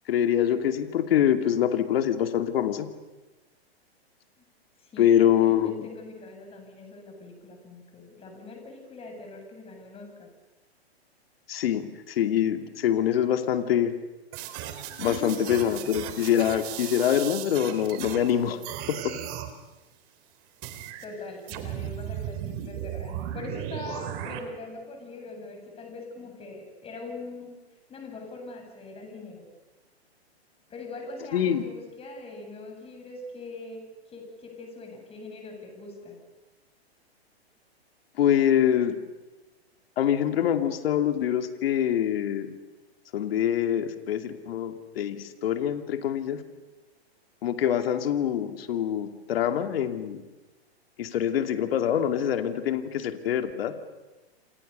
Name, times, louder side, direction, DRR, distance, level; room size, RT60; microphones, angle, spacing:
voice 1, 0.1-2.9 5.0-5.7 11.5-14.0 15.0-18.6 18.9-19.1 31.3-31.6 38.2-39.0 40.0-42.5 43.1-46.4 47.4-50.2 51.0-53.7, left 10 dB, 65° left, 7 dB, 2.7 m, -25 dB
voice 2, 4.8-10.3 15.0-15.6 21.0-27.6 27.9-29.5 30.7-36.2, left 2 dB, 20° left, 3 dB, 7.9 m, -42 dB
sound 1, 14.3-18.3 18.6-19.5 20.6-21.0 21.5-24.4, right 11 dB, 40° right, 3.6 m, -36 dB
29.0 x 26.5 x 6.8 m, 1.1 s
hypercardioid pair, 135°, 32 cm